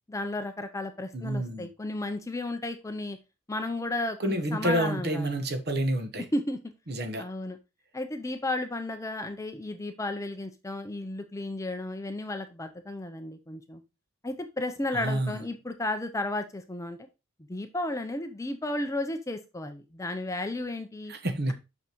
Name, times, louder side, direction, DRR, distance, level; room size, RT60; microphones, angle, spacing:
voice 1, 0.1-3.2 3.5-5.3 6.3-6.6 7.2-7.6 7.9-13.8 14.2-17.0 17.5-21.1, left 2 dB, 15° left, 0.5 m, -33 dB
voice 2, 1.1-1.7 4.2-6.3 6.9-7.2 14.9-15.4 21.1-21.5, right 1 dB, 50° right, 1.0 m, -29 dB
6.2 x 5.8 x 3.0 m
head